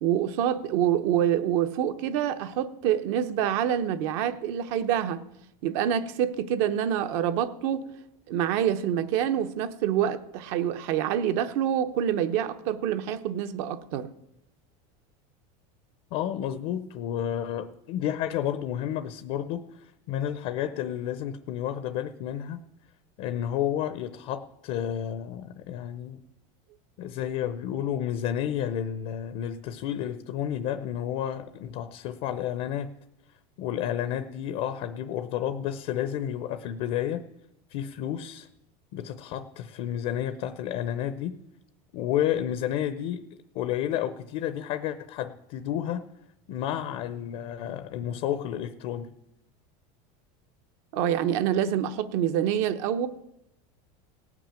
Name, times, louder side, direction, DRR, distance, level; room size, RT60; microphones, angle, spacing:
voice 1, 0.0-5.2 5.6-7.9 8.3-14.1 50.9-53.1, right 10 dB, 55° right, 0.9 m, -26 dB
voice 2, 16.1-22.6 23.2-26.2 27.0-32.9 33.6-37.2 37.7-38.5 38.9-41.4 41.9-43.2 43.5-46.0 46.5-49.1, left 10 dB, 45° left, 0.7 m, -31 dB
17.5 x 6.1 x 8.9 m
supercardioid pair, 170°, 18 cm